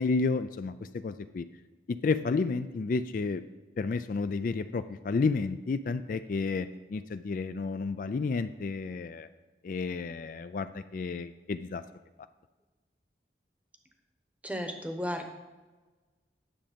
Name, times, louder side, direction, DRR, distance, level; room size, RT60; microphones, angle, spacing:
voice 1, 0.0-1.4 1.9-3.4 3.8-9.3 9.6-11.8, left 4 dB, 50° left, 12 dB, 0.3 m, -31 dB
voice 2, 14.4-15.3, equal, 10° right, 5 dB, 0.9 m, -34 dB
10.0 x 7.2 x 5.2 m, 1.2 s
head